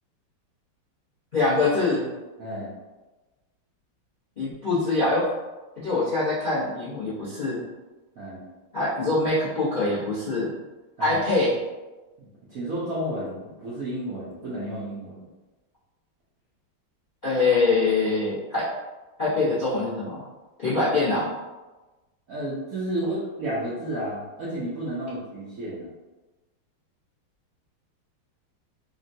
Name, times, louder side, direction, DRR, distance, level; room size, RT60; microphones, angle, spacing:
voice 1, 1.3-2.1 4.4-5.2 5.8-7.6 8.7-10.5 11.0-11.5 17.2-18.7 19.2-20.2 20.6-21.3, left 3 dB, 55° left, -11 dB, 0.5 m, -24 dB
voice 2, 2.4-2.7 8.2-8.5 11.0-11.2 12.2-15.3 22.3-25.9, right 1 dB, 70° right, -9 dB, 0.8 m, -32 dB
3.7 x 2.2 x 2.6 m, 1.2 s
omnidirectional pair, 2.3 m